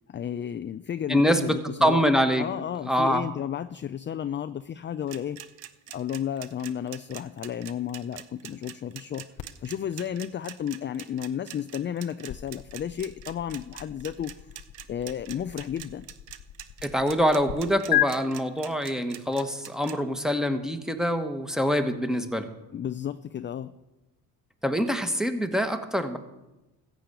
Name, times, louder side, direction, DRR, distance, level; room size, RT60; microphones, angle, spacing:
voice 1, 0.1-2.0 2.4-5.4 5.9-9.3 9.6-14.3 14.9-16.1 22.7-23.7, left 9 dB, 25° left, 12 dB, 0.4 m, -32 dB
voice 2, 1.1-2.5 2.9-3.3 16.8-22.5 24.6-26.2, equal, ahead, 8 dB, 1.3 m, -25 dB
sound 1, 5.1-19.9, right 13 dB, 75° right, 0.9 m, -43 dB
sound 2, 9.4-17.5 17.9-18.1, left 15 dB, 50° left, 0.8 m, -35 dB
14.5 x 5.1 x 8.3 m, 1.0 s
supercardioid pair, 60°, 45 cm